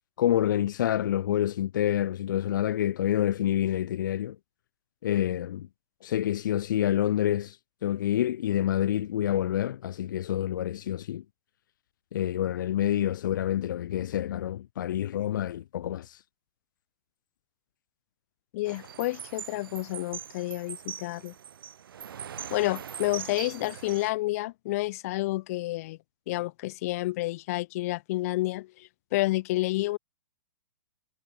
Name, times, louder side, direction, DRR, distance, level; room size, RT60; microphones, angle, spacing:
voice 1, 0.2-4.4 5.0-5.7 6.0-7.6 7.8-11.2 12.1-16.2, left 11 dB, 60° left, 5.0 m, -27 dB
voice 2, 18.5-21.3 22.5-26.0 26.3-30.0, left 19 dB, 45° left, 1.5 m, -30 dB
sound 1, 18.7-24.1, right 8 dB, 75° right, 7.1 m, -41 dB
hypercardioid pair, 155°, 12 cm